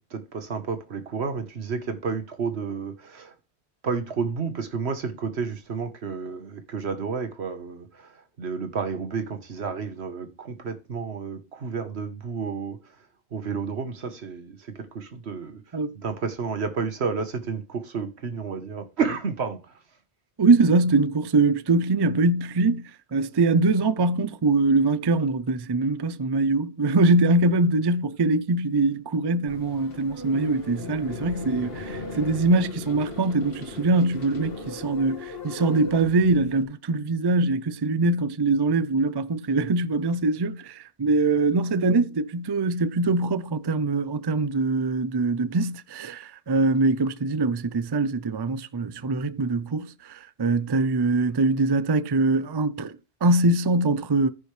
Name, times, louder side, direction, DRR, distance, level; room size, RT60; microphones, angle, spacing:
voice 1, 0.1-3.3 3.8-12.8 13.3-15.6 16.0-19.7, right 5 dB, 80° right, 1.5 m, -31 dB
voice 2, 20.4-54.3, right 3 dB, 35° right, 0.4 m, -23 dB
sound 1, 29.5-36.6, left 3 dB, 60° left, 2.1 m, -38 dB
14.5 x 5.3 x 3.3 m
omnidirectional pair, 1.1 m